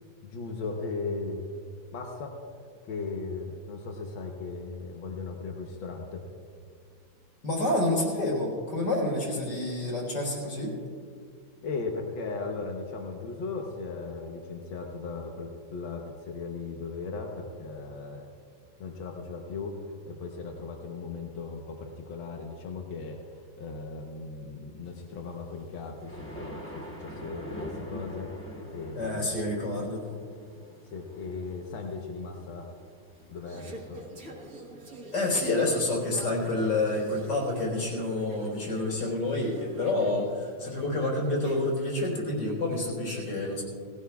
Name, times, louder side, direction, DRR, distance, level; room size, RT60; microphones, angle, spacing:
voice 1, 0.2-1.5 1.9-2.4 2.8-6.3 11.6-18.3 18.8-28.3 28.7-29.4 30.8-32.7 33.3-34.0, left 4 dB, 90° left, 1 dB, 1.8 m, -37 dB
voice 2, 7.4-10.7 29.0-30.0 35.1-43.6, left 2 dB, 70° left, -2 dB, 4.5 m, -28 dB
sound 1, 25.3-33.3, left 1 dB, 10° left, 1.2 m, -44 dB
Conversation / Chatter, 33.2-42.1, right 1 dB, 50° right, 1.8 m, -46 dB
18.5 x 16.0 x 2.4 m, 2.2 s
omnidirectional pair, 2.1 m